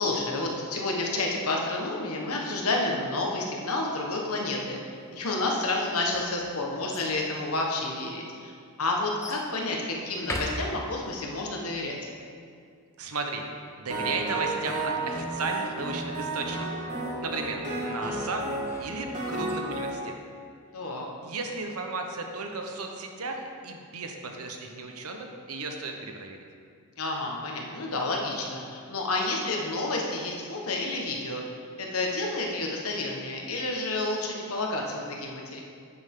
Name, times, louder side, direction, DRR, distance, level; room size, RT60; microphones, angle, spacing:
voice 1, 0.0-4.8 5.1-12.0 20.7-21.1 27.0-31.4 31.8-35.6, left 2 dB, 75° left, 0 dB, 1.4 m, -30 dB
sound 1, 5.8-7.1 8.0-8.1 9.2-9.5 10.1-11.2 18.3-19.5, left 1 dB, 15° left, 0.8 m, -39 dB
voice 2, 13.0-13.4 13.8-16.8 17.2-18.5 18.8-20.1 21.2-26.5, right 3 dB, 80° right, 3 dB, 1.1 m, -34 dB
sound 2, 13.9-19.9, right 2 dB, 35° right, 1.8 m, -32 dB
10.0 x 8.7 x 3.8 m, 2.2 s
head